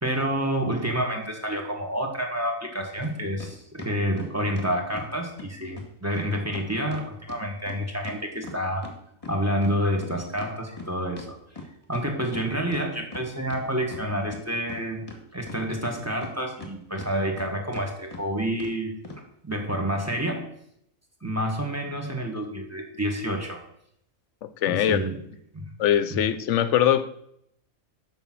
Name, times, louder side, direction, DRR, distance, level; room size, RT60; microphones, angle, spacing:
voice 1, 0.0-8.9 9.3-11.4 11.9-15.0 15.3-18.9 19.4-20.5 21.2-23.6 24.7-25.2 25.5-25.7 26.1-26.2, equal, 10° right, 2 dB, 1.4 m, -28 dB
sound 1, 3.0-3.1 3.4-5.1 5.4-5.5 5.8-5.9 6.1-6.2 6.5-9.0 9.2-12.0 12.3-12.4 12.7-13.6 13.9-14.8 15.1-16.7 17.0-17.5 17.7-17.8 18.1-18.2 18.6-18.7 19.0-19.2, left 3 dB, 25° left, 1.5 m, -40 dB
voice 2, 24.6-25.0 25.8-27.1, left 10 dB, 65° left, 12 dB, 0.9 m, -21 dB
7.0 x 5.7 x 7.5 m, 0.73 s
omnidirectional pair, 1.4 m